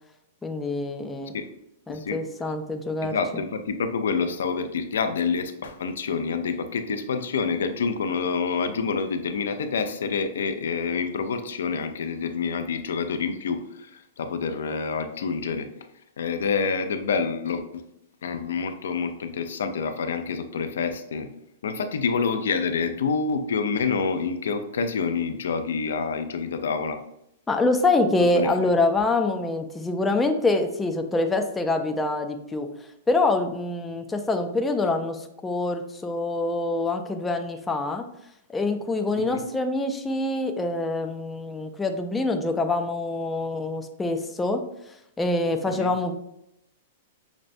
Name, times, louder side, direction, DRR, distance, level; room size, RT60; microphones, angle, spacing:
voice 1, 0.4-1.3 1.9-3.1 27.5-32.7 33.1-38.1 38.5-44.6 45.2-46.1, left 2 dB, 10° left, 5 dB, 0.3 m, -25 dB
voice 2, 3.0-15.7 16.2-17.8 18.2-21.3 21.6-27.0 28.3-28.5 39.3-39.4 45.8-45.9, left 5 dB, 90° left, 8 dB, 0.4 m, -27 dB
6.0 x 2.1 x 2.5 m, 0.79 s
hypercardioid pair, 155°, 0 cm